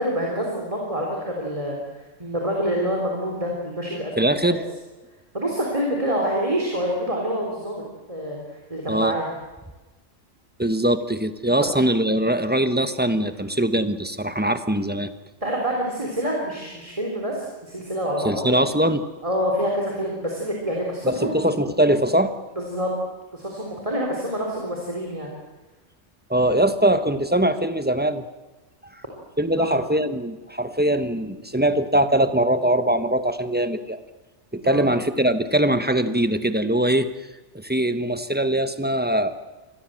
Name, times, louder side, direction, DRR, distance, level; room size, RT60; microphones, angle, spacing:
voice 1, 0.0-1.8 2.2-4.6 5.3-7.8 8.1-8.4 8.7-9.3 15.4-18.5 19.2-21.4 22.6-22.9 23.3-25.3 29.5-29.8 34.6-34.9, equal, 25° right, -1 dB, 3.9 m, -27 dB
voice 2, 4.2-4.6 8.9-9.2 10.6-15.1 18.2-19.0 21.0-22.3 26.3-28.2 28.9-29.0 29.4-34.0 34.5-37.1 37.5-39.3, right 1 dB, 10° right, 10 dB, 1.2 m, -22 dB
27.0 x 20.5 x 7.8 m, 1.2 s
omnidirectional pair, 1.2 m